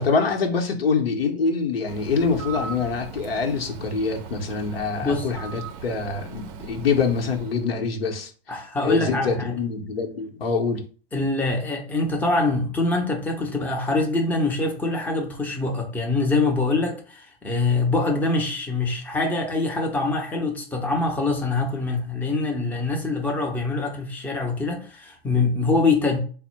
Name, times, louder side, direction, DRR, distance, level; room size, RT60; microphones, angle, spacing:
voice 1, 0.0-8.3 8.8-10.8 25.7-25.8, left 5 dB, 65° left, 1.0 m, -25 dB
Bird, 1.9-7.7, right 6 dB, 30° right, 0.6 m, -38 dB
voice 2, 5.0-5.3 8.5-9.6 11.1-26.2, left 3 dB, 5° left, 0.7 m, -24 dB
4.1 x 2.1 x 4.3 m
figure-of-eight pair, 95°, 31 cm